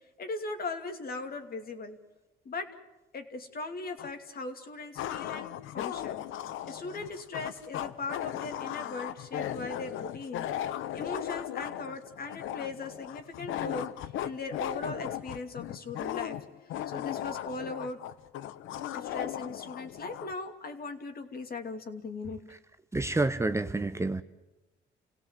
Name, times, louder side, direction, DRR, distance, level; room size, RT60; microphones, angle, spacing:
voice 1, 0.2-2.0 2.4-2.7 3.1-6.2 6.6-10.5 10.9-16.4 16.9-18.0 18.9-22.4, left 3 dB, 50° left, 6 dB, 2.8 m, -39 dB
sound 1, 4.0-4.1 4.9-20.3, left 11 dB, 90° left, 0.9 m, -37 dB
voice 2, 22.9-24.2, right 2 dB, 15° right, 10 dB, 0.8 m, -28 dB
29.0 x 17.5 x 7.6 m, 1.1 s
cardioid pair, 90°, 20 cm